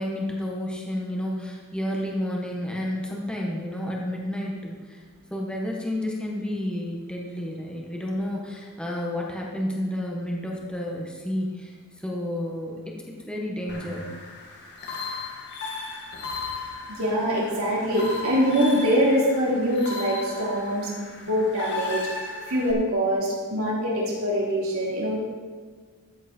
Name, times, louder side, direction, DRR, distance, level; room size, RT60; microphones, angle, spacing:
voice 1, 0.0-5.0 5.3-11.7 12.0-14.1, left 1 dB, 5° left, -2 dB, 1.5 m, -31 dB
sound 1, 13.7-22.7, left 3 dB, 50° left, 1.9 m, -36 dB
voice 2, 16.9-22.1 22.5-25.2, equal, 70° right, -4 dB, 3.3 m, -24 dB
13.5 x 8.0 x 4.5 m, 1.5 s
head